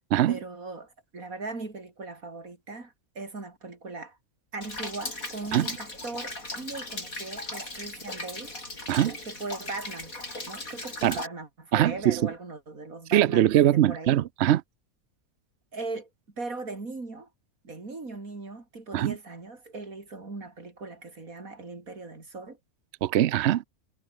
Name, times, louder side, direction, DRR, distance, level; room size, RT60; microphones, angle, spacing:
voice 1, 0.3-4.2 4.5-8.5 9.3-10.1 10.5-14.2 15.7-16.1 16.4-17.3 17.6-22.6, right 3 dB, 90° right, 4.3 m, -39 dB
Rain, 4.6-11.3, left 2 dB, 90° left, 7.4 m, -38 dB
voice 2, 11.7-12.2 13.1-14.6 18.9-19.2 23.0-23.6, right 12 dB, 60° right, 0.8 m, -22 dB
omnidirectional pair, 1.4 m